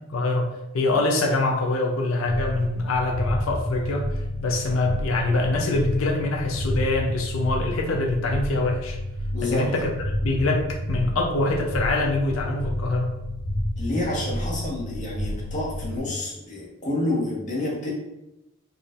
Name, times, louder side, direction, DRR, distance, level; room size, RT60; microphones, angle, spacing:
voice 1, 0.1-4.1 4.4-9.0 9.4-9.9 10.2-13.1, left 2 dB, 75° left, 1 dB, 0.6 m, -24 dB
sound 1, 2.3-16.0, left 1 dB, 15° right, 0.7 m, -30 dB
voice 2, 9.3-9.7 13.8-17.9, left 1 dB, 35° left, -4 dB, 1.3 m, -28 dB
4.7 x 3.3 x 2.5 m, 0.92 s
head